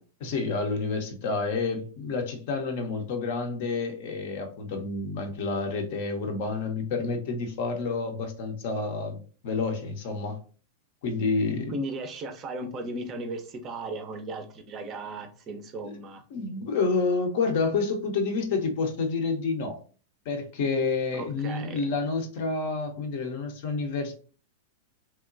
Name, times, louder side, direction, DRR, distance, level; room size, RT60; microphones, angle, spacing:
voice 1, 0.2-10.4 11.0-11.8 15.8-15.9 16.3-19.8 20.3-24.2, left 4 dB, 50° left, 5 dB, 0.5 m, -29 dB
voice 2, 11.7-16.2 21.1-21.9, right 2 dB, 30° right, 7 dB, 0.4 m, -36 dB
2.9 x 2.1 x 2.4 m, 0.39 s
figure-of-eight pair, 95°, 0 cm